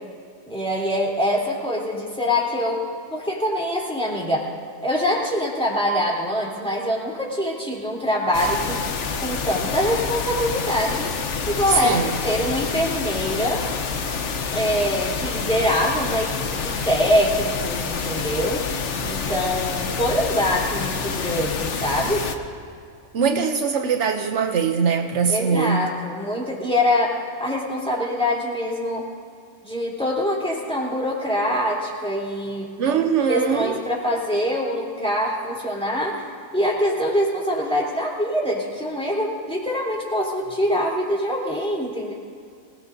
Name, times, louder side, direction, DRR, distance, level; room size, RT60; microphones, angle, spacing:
voice 1, 0.5-2.8 3.1-4.5 4.8-8.8 9.2-11.1 11.5-13.6 14.5-18.6 19.0-22.3 25.3-29.1 29.6-32.7 33.3-42.1, equal, 5° left, -4 dB, 3.6 m, -24 dB
sound 1, 8.3-22.4, left 5 dB, 75° left, 1.2 m, -28 dB
voice 2, 11.7-12.1 23.1-25.9 32.8-33.8, right 6 dB, 70° right, 5 dB, 1.1 m, -21 dB
25.5 x 18.0 x 2.7 m, 2.3 s
omnidirectional pair, 1.3 m